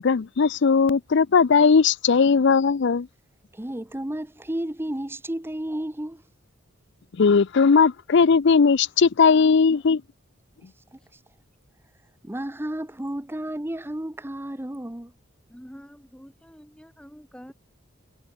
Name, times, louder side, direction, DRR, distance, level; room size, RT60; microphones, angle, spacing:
voice 1, 0.0-3.1 7.2-10.0, left 5 dB, 60° left, 0.5 m, -18 dB
voice 2, 3.5-6.2 10.9-11.0 12.2-15.1, right 1 dB, 10° right, 0.8 m, -32 dB
voice 3, 15.5-17.5, equal, 5° left, 2.6 m, -46 dB
head